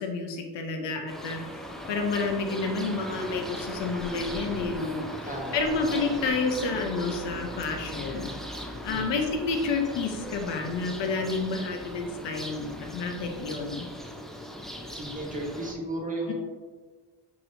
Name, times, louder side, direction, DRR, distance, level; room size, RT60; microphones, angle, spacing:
voice 1, 0.0-1.4 1.9-8.3 8.8-13.9 16.3-16.4, left 4 dB, 70° left, 3 dB, 0.7 m, -30 dB
sound 1, 1.1-15.7, equal, ahead, 0.4 m, -39 dB
voice 2, 5.3-6.0 8.9-9.2 14.9-16.3, right 1 dB, 20° right, -1 dB, 1.2 m, -35 dB
6.1 x 2.8 x 2.6 m, 1.4 s
cardioid pair, 60°, 44 cm